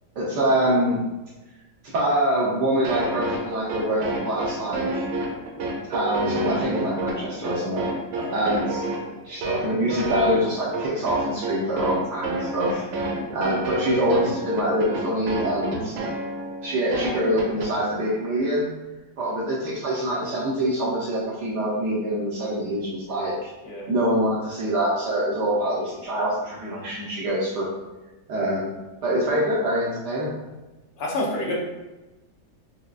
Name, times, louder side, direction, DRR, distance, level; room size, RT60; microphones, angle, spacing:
voice 1, 0.2-1.0 1.8-5.1 5.9-7.9 8.3-8.8 9.2-12.8 13.3-15.9 16.6-18.7 19.2-23.5 23.9-27.7 28.3-28.7 29.0-30.4, right 1 dB, 70° right, -6 dB, 1.1 m, -25 dB
sound 1, 2.8-17.7, right 2 dB, 90° right, 1.4 m, -29 dB
voice 2, 23.6-23.9 31.0-31.6, left 1 dB, 70° left, -2 dB, 1.2 m, -28 dB
4.9 x 2.2 x 2.3 m, 1.1 s
omnidirectional pair, 2.1 m